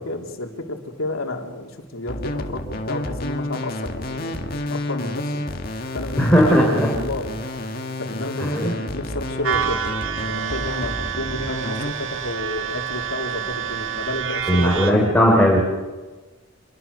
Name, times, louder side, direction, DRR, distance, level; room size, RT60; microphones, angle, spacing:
voice 1, 0.0-5.4 5.9-7.4 8.0-9.9 10.2-15.2, left 2 dB, 85° left, 2 dB, 3.3 m, -31 dB
sound 1, 2.1-11.9, left 1 dB, 45° left, 2.0 m, -30 dB
voice 2, 6.2-6.9 8.4-8.8 14.5-15.6, equal, 10° left, -2 dB, 3.9 m, -17 dB
sound 2, 9.4-14.9, right 8 dB, 75° right, 2.6 m, -28 dB
26.5 x 22.5 x 6.8 m, 1.3 s
head